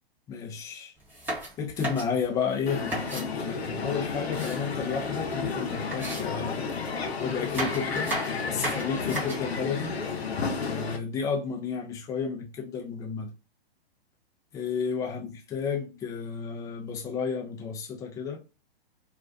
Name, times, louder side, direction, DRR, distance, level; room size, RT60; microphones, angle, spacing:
voice 1, 0.3-0.9 1.6-6.6 7.2-8.1 8.4-9.9 10.6-13.3 14.5-18.4, left 6 dB, 10° left, 0.4 m, -32 dB
sound 1, 1.0-3.3 3.9-5.2 5.4-5.5 5.9-6.9 7.3-9.5, right 1 dB, 5° right, 0.8 m, -35 dB
Crowd, 2.7-11.0, left 5 dB, 80° left, 0.7 m, -32 dB
2.4 x 2.1 x 2.4 m
hypercardioid pair, 120°, 31 cm